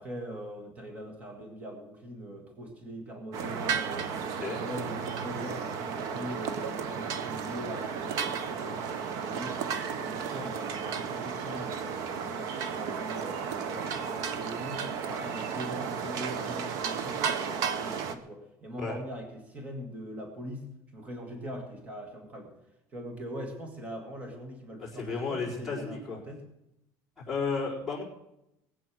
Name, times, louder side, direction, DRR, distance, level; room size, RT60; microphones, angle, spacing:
voice 1, 0.0-4.0 4.3-9.6 10.0-22.5 22.9-26.5, equal, 20° right, 3 dB, 2.0 m, -41 dB
sound 1, 3.3-18.2, right 6 dB, 55° right, 1.0 m, -33 dB
voice 2, 4.2-4.6 18.8-18.9 24.8-26.2 27.2-28.0, left 4 dB, ahead, -8 dB, 4.1 m, -33 dB
19.5 x 8.6 x 6.3 m, 0.87 s
cardioid pair, 175°, 7 cm